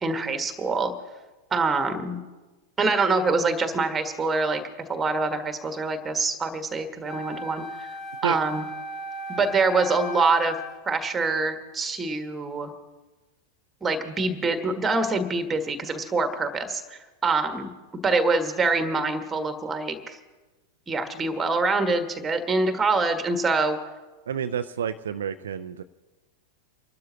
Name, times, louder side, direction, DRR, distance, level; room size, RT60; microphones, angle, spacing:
voice 1, 0.0-0.9 1.5-2.2 2.8-4.6 4.9-7.9 8.2-8.6 9.3-10.5 10.9-12.7 13.8-17.7 18.0-20.2 20.9-23.8, right 3 dB, 15° right, 8 dB, 1.6 m, -25 dB
Wind instrument woodwind instrument, 7.1-10.8, right 1 dB, 25° left, 1.8 m, -36 dB
voice 2, 24.3-25.8, right 8 dB, 65° right, 9 dB, 0.5 m, -29 dB
29.5 x 12.0 x 2.9 m, 1.2 s
figure-of-eight pair, 90°, 0 cm